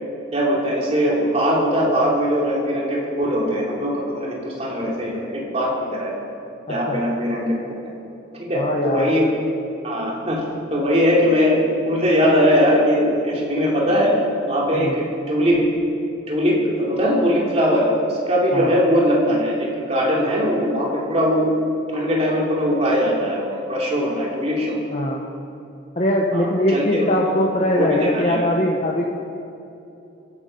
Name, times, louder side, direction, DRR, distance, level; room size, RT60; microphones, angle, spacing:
voice 1, 0.3-6.2 6.7-7.5 8.4-9.3 9.8-14.1 14.5-15.6 16.3-21.5 21.9-24.8 26.3-27.1 27.7-28.5, equal, 30° right, -3 dB, 2.8 m, -20 dB
voice 2, 6.7-7.0 8.5-9.1 14.7-15.0 18.5-18.8 24.9-25.2 26.0-29.0, left 1 dB, 35° left, -1 dB, 1.0 m, -21 dB
22.0 x 9.8 x 5.5 m, 2.8 s
head